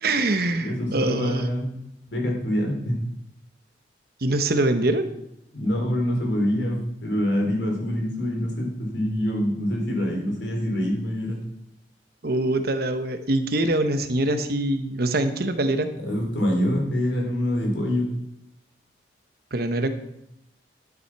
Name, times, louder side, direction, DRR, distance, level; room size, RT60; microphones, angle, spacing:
voice 1, 0.0-1.5 4.2-5.1 12.2-15.9 19.5-19.9, right 2 dB, 55° right, 9 dB, 1.0 m, -24 dB
voice 2, 0.6-1.7 2.1-3.0 5.5-11.4 16.0-18.1, equal, 80° left, 0 dB, 3.5 m, -25 dB
11.0 x 9.7 x 4.7 m, 0.82 s
head